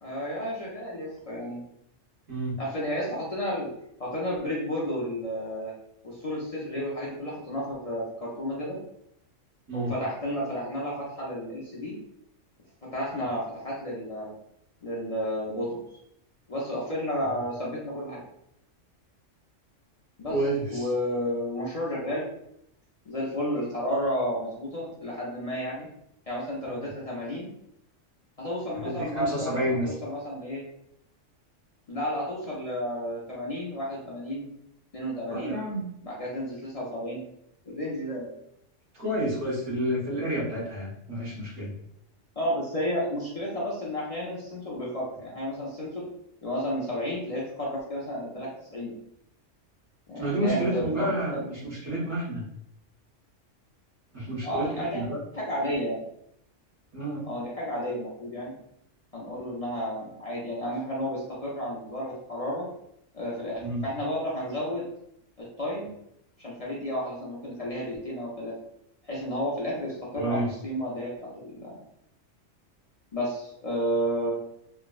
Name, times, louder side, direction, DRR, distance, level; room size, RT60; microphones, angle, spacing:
voice 1, 0.0-1.6 2.6-3.7 4.0-5.7 6.0-8.8 9.7-11.9 12.8-14.3 14.8-15.8 16.5-18.2 20.2-20.4 20.7-22.3 23.1-25.9 26.3-27.5 28.4-30.6 31.9-34.5 34.9-35.6 36.0-37.2 37.7-38.3 42.4-46.1 46.4-48.9 50.1-51.4 54.4-55.0 55.3-56.0 57.3-58.5 59.1-62.7 63.1-64.9 65.4-65.9 66.4-68.6 69.0-71.8 73.1-74.3, equal, 45° left, -6 dB, 0.5 m, -32 dB
voice 2, 20.3-20.8 26.7-26.8 28.8-29.9 35.3-35.8 38.9-41.7 50.2-52.5 54.1-55.2 56.9-57.3 63.6-63.8 70.1-70.5, right 1 dB, 65° right, -6 dB, 1.4 m, -30 dB
3.3 x 2.0 x 2.3 m, 0.77 s
omnidirectional pair, 1.3 m